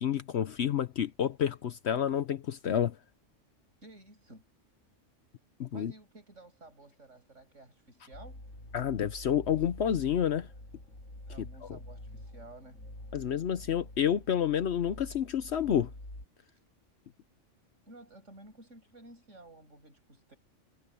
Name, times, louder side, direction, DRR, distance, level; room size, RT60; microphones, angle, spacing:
voice 1, 0.0-3.0 5.6-5.9 8.7-10.5 11.4-11.8 13.1-15.9, left 9 dB, 65° left, 1.0 m, -29 dB
voice 2, 3.8-4.5 5.7-8.4 11.3-12.8 17.9-20.4, right 2 dB, 80° right, 8.5 m, -53 dB
sound 1, 8.1-16.2, left 1 dB, 80° left, 8.0 m, -47 dB
omnidirectional pair, 1.3 m